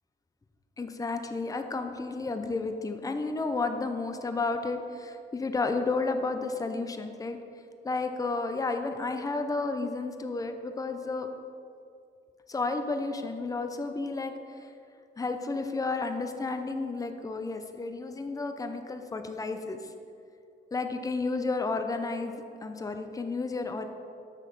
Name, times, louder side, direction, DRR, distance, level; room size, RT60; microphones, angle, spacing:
voice 1, 0.8-7.4 7.8-11.3 12.5-14.7 15.2-19.9 20.7-23.9, left 3 dB, 15° left, 7 dB, 0.6 m, -32 dB
6.4 x 6.1 x 5.4 m, 2.4 s
cardioid pair, 90°, 20 cm